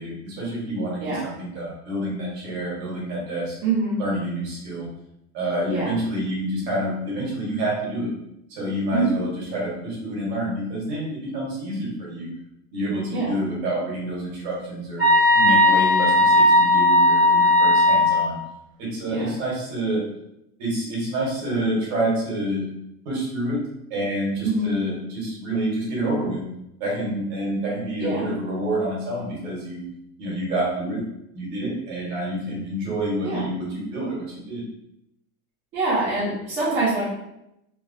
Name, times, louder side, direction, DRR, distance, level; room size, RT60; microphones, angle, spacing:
voice 1, 0.0-3.6 4.0-4.9 5.3-8.1 8.5-12.3 12.7-18.4 18.8-20.0 20.6-22.6 23.0-23.6 23.9-26.4 26.8-29.8 30.2-31.0 31.3-34.6, right 1 dB, 45° right, -5 dB, 1.2 m, -28 dB
voice 2, 3.6-4.0 5.7-5.9 8.9-9.2 13.1-13.4 19.1-19.4 24.4-24.7 28.0-28.3 33.2-33.5 35.7-37.0, right 3 dB, 25° right, -11 dB, 0.8 m, -24 dB
sound 1, 15.0-18.2, left 1 dB, 10° right, 0.3 m, -16 dB
3.0 x 2.3 x 2.6 m, 0.83 s
supercardioid pair, 175°, 45 cm